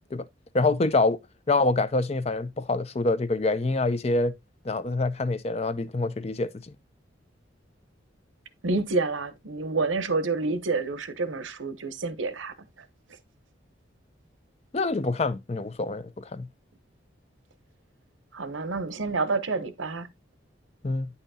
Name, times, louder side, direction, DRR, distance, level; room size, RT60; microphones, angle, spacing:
voice 1, 0.5-1.2 1.5-4.3 4.6-6.5 14.7-16.5 20.8-21.1, left 3 dB, 30° left, 0.5 m, -26 dB
voice 2, 8.6-12.5 18.3-20.1, right 3 dB, 80° right, 0.8 m, -28 dB
9.1 x 5.7 x 2.7 m
head